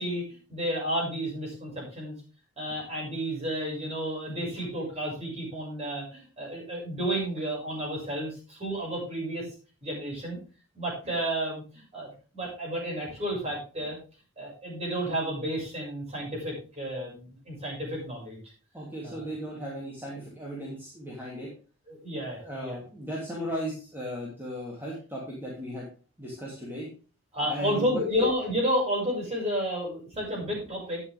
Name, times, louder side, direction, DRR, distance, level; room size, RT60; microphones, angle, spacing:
voice 1, 0.0-2.2 2.6-9.5 9.8-10.4 10.7-14.0 14.4-18.4 19.0-19.3 21.9-22.8 27.3-31.0, equal, 30° right, -3 dB, 6.4 m, -31 dB
voice 2, 18.7-21.5 22.4-25.9 26.2-26.9 27.5-28.2, equal, 10° right, -4 dB, 2.7 m, -36 dB
11.5 x 9.7 x 3.6 m, 0.34 s
head